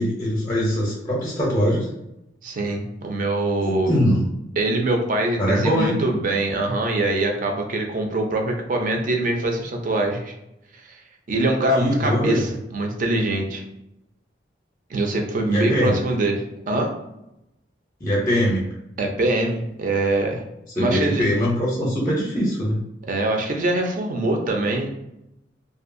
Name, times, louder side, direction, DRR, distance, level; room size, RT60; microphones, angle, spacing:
voice 1, 0.0-1.9 3.6-4.2 5.4-5.9 11.8-12.5 15.5-16.0 18.0-18.6 20.8-22.8, equal, 20° left, -4 dB, 0.5 m, -22 dB
voice 2, 2.4-3.9 4.6-10.3 10.7-11.0 11.3-13.6 14.9-16.4 16.7-16.9 19.0-20.4 20.8-21.2 23.1-24.9, right 2 dB, 45° right, 2 dB, 0.5 m, -23 dB
2.6 x 2.3 x 2.5 m, 0.87 s
head